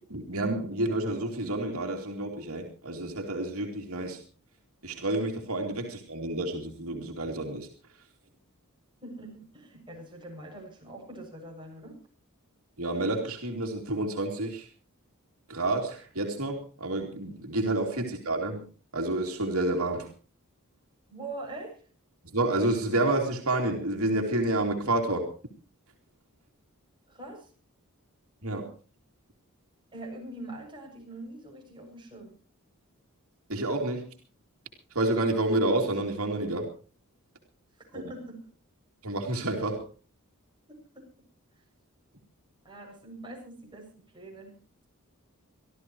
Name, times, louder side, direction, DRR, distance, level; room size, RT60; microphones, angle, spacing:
voice 1, 0.1-4.2 4.8-7.7 12.8-14.7 15.5-18.7 18.9-20.1 22.3-25.3 28.4-28.7 33.5-34.1 34.9-36.7 39.0-39.8, right 2 dB, 75° right, 1 dB, 3.0 m, -29 dB
voice 2, 9.0-12.0 21.1-21.8 27.1-27.5 29.9-32.3 37.9-38.5 39.6-39.7 40.7-41.1 42.6-43.9 44.1-44.5, right 2 dB, 20° right, 0 dB, 7.5 m, -43 dB
25.0 x 14.0 x 3.1 m, 0.37 s
head